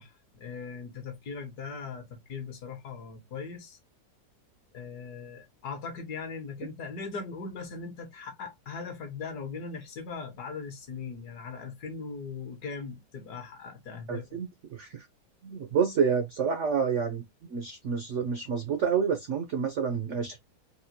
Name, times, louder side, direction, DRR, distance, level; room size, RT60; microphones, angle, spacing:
voice 1, 0.0-3.8 4.7-14.4, left 5 dB, 65° left, 1.4 m, -39 dB
voice 2, 14.1-15.0 15.4-17.2 17.5-20.4, right 6 dB, 75° right, 0.6 m, -28 dB
4.1 x 2.2 x 2.7 m
omnidirectional pair, 2.0 m